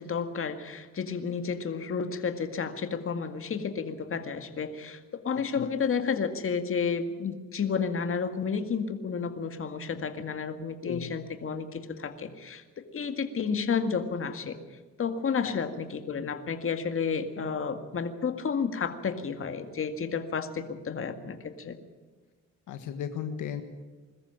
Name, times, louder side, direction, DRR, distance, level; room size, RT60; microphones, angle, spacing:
voice 1, 0.0-12.6 12.9-14.6 15.0-21.8, left 6 dB, 45° left, 8 dB, 2.0 m, -31 dB
voice 2, 22.7-23.6, left 8 dB, 80° left, 8 dB, 1.5 m, -35 dB
21.5 x 14.0 x 9.0 m, 1.3 s
cardioid pair, 90°, 30 cm